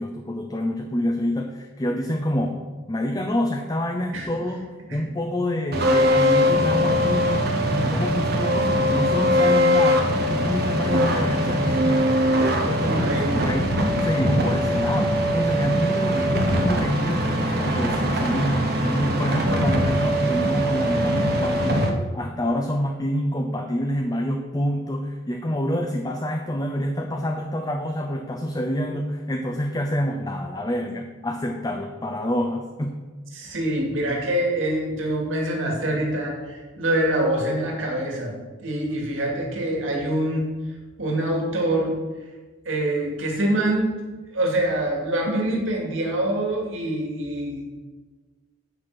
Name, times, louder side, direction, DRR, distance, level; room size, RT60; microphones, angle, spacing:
voice 1, 0.0-2.6 2.9-4.6 4.9-7.4 7.7-12.1 12.4-21.9 22.1-32.9, equal, 20° left, 2 dB, 0.6 m, -27 dB
sound 1, 5.7-21.9, equal, 50° right, 1.3 m, -22 dB
voice 2, 12.8-13.4 33.3-38.3 38.6-40.5 41.0-41.9 42.7-43.9 44.3-47.6, right 1 dB, 85° right, 0 dB, 2.4 m, -25 dB
8.9 x 6.5 x 5.9 m, 1.3 s
head